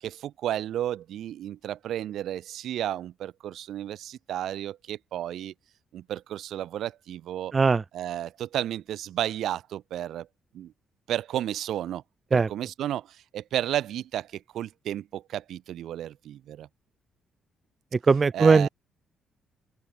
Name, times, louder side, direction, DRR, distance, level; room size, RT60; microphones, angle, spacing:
voice 1, 0.0-5.5 5.9-7.5 7.9-10.3 10.5-10.7 11.1-12.0 12.3-13.1 13.3-16.7 18.3-18.7, right 11 dB, 75° right, 3.0 m, -32 dB
voice 2, 7.5-7.8 12.3-12.5 18.1-18.7, right 4 dB, 35° right, 0.4 m, -19 dB
open air
cardioid pair, 90°, 0 cm